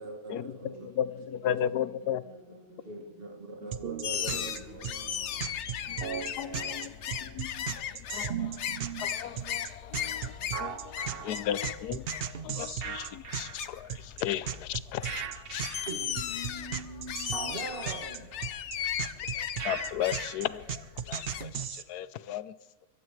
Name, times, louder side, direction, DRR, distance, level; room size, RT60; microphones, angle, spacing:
voice 1, 0.0-0.9 1.4-1.7 2.8-5.4 8.2-8.4 10.0-10.1 15.9-18.4, right 1 dB, 35° right, 1 dB, 2.2 m, -43 dB
voice 2, 0.7-3.1 4.2-6.2 10.3-10.6, left 1 dB, 85° right, -4 dB, 7.1 m, -53 dB
voice 3, 1.4-2.2 6.4-6.5 7.4-7.5 8.1-8.3 9.0-10.3 10.6-10.8 11.2-12.0 12.4-13.9 14.2-15.0 15.5-15.6 19.6-20.6 21.1-21.2 21.9-22.5, left 10 dB, 85° left, 16 dB, 1.2 m, -33 dB
sound 1, 3.7-21.8, right 8 dB, 55° right, 0.7 m, -36 dB
sound 2, 4.0-21.7, left 9 dB, 60° left, 0.9 m, -37 dB
23.5 x 15.5 x 3.2 m, 1.2 s
omnidirectional pair, 1.6 m